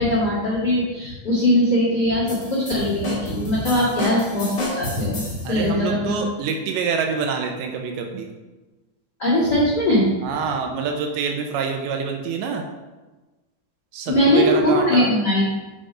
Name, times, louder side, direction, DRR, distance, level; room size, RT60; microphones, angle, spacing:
voice 1, 0.0-6.2 9.2-10.1 14.1-15.4, left 1 dB, 85° left, -7 dB, 0.9 m, -20 dB
sound 1, 2.3-5.5, left 1 dB, 45° left, 1.1 m, -31 dB
voice 2, 5.4-8.3 10.2-12.6 13.9-15.2, right 5 dB, 80° right, 3 dB, 2.8 m, -26 dB
7.6 x 5.1 x 5.0 m, 1.2 s
omnidirectional pair, 5.4 m